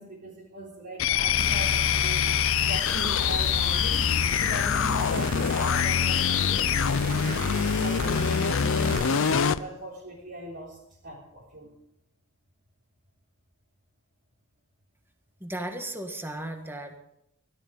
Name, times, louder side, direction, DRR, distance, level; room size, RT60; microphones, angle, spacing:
voice 1, 0.0-2.3 2.6-11.7, right 1 dB, 55° right, -6 dB, 3.8 m, -39 dB
sound 1, 1.0-9.6, left 8 dB, 60° left, 0.5 m, -24 dB
sound 2, 1.3-9.5, right 6 dB, 40° right, 0.9 m, -38 dB
voice 2, 15.4-17.0, right 1 dB, 10° right, 5 dB, 1.5 m, -35 dB
17.5 x 13.0 x 5.1 m, 0.80 s
head